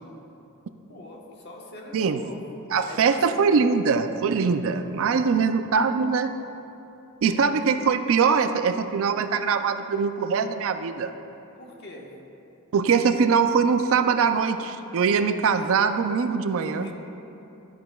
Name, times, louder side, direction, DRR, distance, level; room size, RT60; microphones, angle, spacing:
voice 1, 0.9-2.4 2.8-3.5 7.4-7.6 11.6-12.1 16.5-16.9, left 1 dB, 50° left, -1 dB, 1.2 m, -42 dB
voice 2, 1.9-2.2 2.7-6.3 7.2-11.1 12.7-16.9, right 5 dB, 65° right, 9 dB, 0.4 m, -22 dB
12.5 x 9.3 x 2.3 m, 2.8 s
head